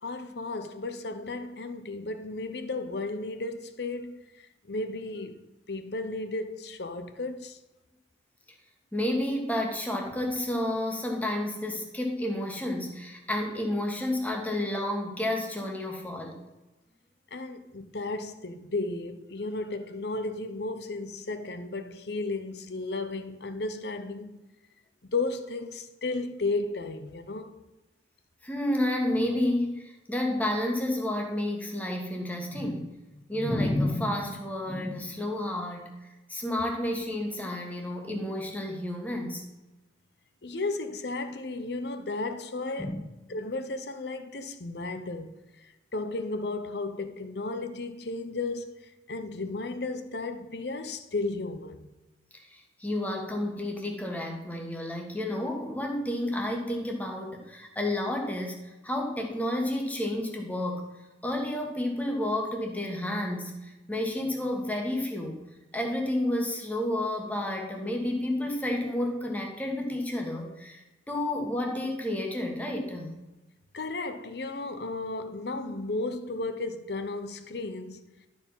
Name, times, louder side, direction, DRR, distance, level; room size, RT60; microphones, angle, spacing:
voice 1, 0.0-4.2 4.7-5.4 5.7-7.6 17.3-24.4 25.1-27.5 40.4-43.0 43.3-51.9 73.7-78.3, left 3 dB, 60° left, 0.8 m, -34 dB
voice 2, 8.9-16.4 28.4-32.9 33.3-35.9 36.3-39.4 42.8-43.0 52.4-60.9 61.2-65.4 65.7-73.1, left 1 dB, 10° left, 1.4 m, -30 dB
12.0 x 4.9 x 5.6 m
head